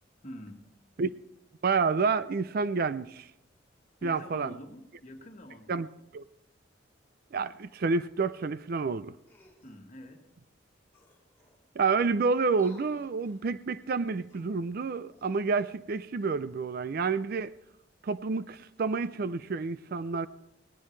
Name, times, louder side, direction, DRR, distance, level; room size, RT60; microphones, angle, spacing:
voice 1, 0.2-0.6 4.0-5.9 9.6-10.3, equal, 40° left, 1.7 m, -46 dB
voice 2, 1.6-3.3 4.0-4.5 5.7-5.9 6.1-6.2 7.3-9.1 11.8-17.5 18.0-20.3, right 4 dB, 50° right, 0.4 m, -29 dB
sound 1, 9.2-9.8 10.6-10.7 10.9-11.8 12.5-13.5 14.1-15.5 16.1-16.3, left 3 dB, 10° left, 2.9 m, -60 dB
18.0 x 17.5 x 3.3 m
head